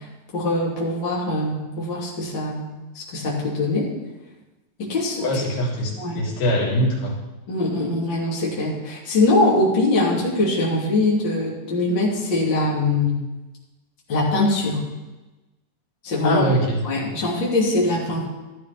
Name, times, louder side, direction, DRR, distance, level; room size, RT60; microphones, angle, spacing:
voice 1, 0.3-3.9 4.8-5.3 6.0-6.2 7.5-13.2 14.1-14.8 16.0-16.4 16.8-18.3, left 2 dB, 35° left, -4 dB, 2.9 m, -22 dB
voice 2, 5.2-7.2 16.2-16.8, equal, 80° left, -3 dB, 3.7 m, -22 dB
13.5 x 12.0 x 3.5 m, 1.1 s
omnidirectional pair, 4.0 m